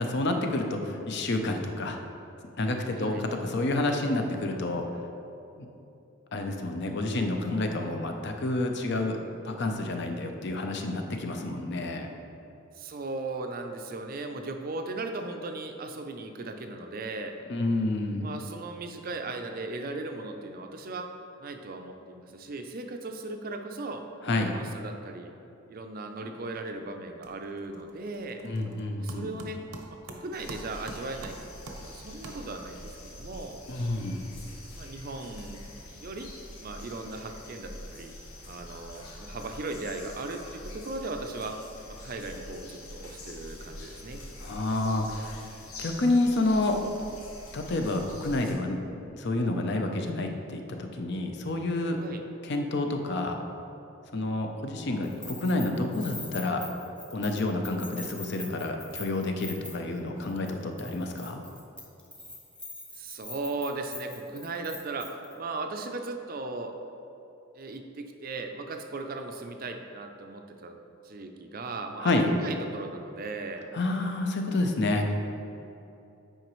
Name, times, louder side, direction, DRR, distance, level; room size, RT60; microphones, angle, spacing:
voice 1, 0.0-2.0 2.6-4.9 6.3-9.2 9.4-12.1 17.5-18.3 24.2-24.5 28.4-29.3 33.7-34.3 44.4-45.5 45.8-46.8 47.5-48.8 49.1-52.0 52.4-53.4 54.1-56.6 57.1-61.4 72.0-72.3 73.7-75.3, left 2 dB, 50° left, 4 dB, 0.6 m, -29 dB
voice 2, 2.9-3.2 12.7-17.3 18.2-21.1 21.4-25.3 25.7-28.4 29.0-29.6 29.9-33.6 34.8-35.6 36.0-36.3 36.6-38.1 38.5-41.6 41.9-44.2 52.0-52.2 62.9-66.8 67.5-70.8 71.0-72.2 72.4-73.7, right 3 dB, 40° right, 5 dB, 0.5 m, -37 dB
sound 1, 26.4-26.7 27.0-32.9, right 2 dB, 80° right, 0.8 m, -47 dB
sound 2, 30.3-48.5, left 1 dB, 80° left, 1.2 m, -45 dB
Keys jangling, 55.0-60.0 60.2-60.5 60.8-65.3, left 1 dB, 5° left, 0.6 m, -42 dB
9.0 x 4.9 x 3.1 m, 2.8 s
head